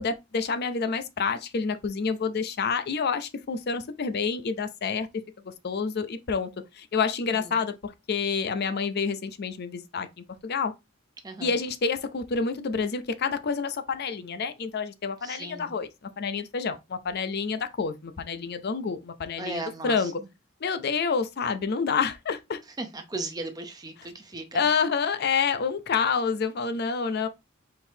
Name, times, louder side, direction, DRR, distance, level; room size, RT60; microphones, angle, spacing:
voice 1, 0.0-5.1 5.4-6.5 6.7-10.7 11.4-15.9 16.2-20.2 20.6-22.6 24.5-27.3, left 5 dB, 50° left, 0.5 m, -28 dB
voice 2, 7.3-7.7 11.2-11.5 15.2-15.7 19.4-20.3 22.8-24.7, right 2 dB, 20° right, 0.8 m, -37 dB
4.4 x 3.7 x 2.7 m
head